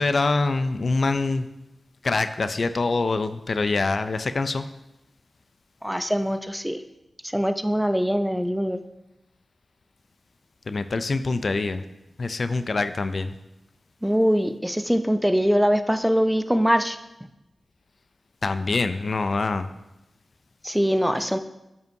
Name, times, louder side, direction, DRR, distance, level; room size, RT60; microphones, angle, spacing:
voice 1, 0.0-1.5 2.0-4.6 10.7-11.8 12.2-13.4 18.4-19.7 21.2-21.3, left 3 dB, 60° left, 11 dB, 0.4 m, -25 dB
voice 2, 5.8-6.8 7.3-8.8 14.0-17.0 20.6-21.4, equal, 5° right, 10 dB, 0.5 m, -22 dB
8.9 x 5.5 x 2.7 m, 0.94 s
cardioid pair, 45°, 0 cm